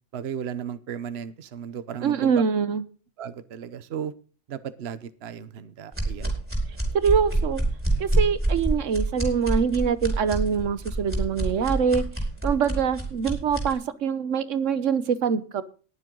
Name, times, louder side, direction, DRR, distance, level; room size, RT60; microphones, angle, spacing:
voice 1, 0.1-2.4 3.2-4.1 4.5-6.4, right 8 dB, 60° right, 14 dB, 1.1 m, -35 dB
voice 2, 2.0-2.8 6.9-7.6 8.0-12.0 12.4-15.6, right 6 dB, 80° right, 14 dB, 1.2 m, -24 dB
sound 1, 5.9-13.7, right 2 dB, 10° right, 4.7 m, -27 dB
19.5 x 7.6 x 3.8 m, 0.38 s
omnidirectional pair, 1.3 m